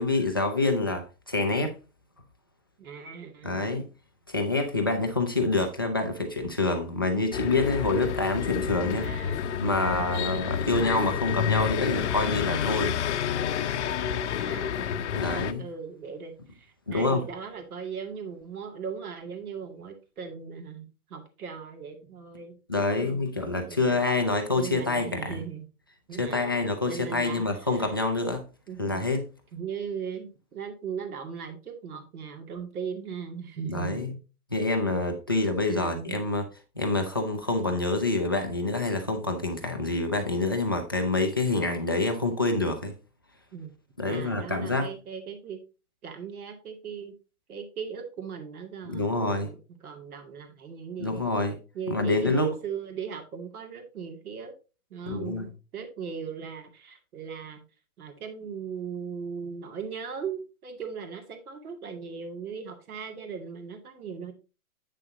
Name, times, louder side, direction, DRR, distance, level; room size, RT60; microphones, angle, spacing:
voice 1, 0.0-1.7 3.4-3.9 4.3-9.1 9.6-13.0 15.1-15.6 16.9-17.2 22.7-25.4 26.1-28.4 28.8-29.2 33.7-34.1 34.5-36.5 36.8-42.9 44.0-44.9 48.9-49.5 51.0-51.6 51.9-52.5 55.1-55.5, left 2 dB, 20° left, 0.3 m, -27 dB
voice 2, 2.8-3.7 9.0-9.4 14.3-14.9 15.6-23.3 23.7-24.0 24.5-25.7 26.1-27.9 28.7-29.0 29.5-34.2 35.7-36.2 43.5-43.7 44.1-45.6 46.0-47.1 47.5-49.6 49.8-51.2 51.7-54.5 54.9-57.6 58.0-64.3, right 6 dB, 70° right, 2.3 m, -38 dB
sound 1, 7.3-15.5, left 8 dB, 50° left, 0.7 m, -29 dB
8.5 x 6.5 x 2.7 m
hypercardioid pair, 150°, 44 cm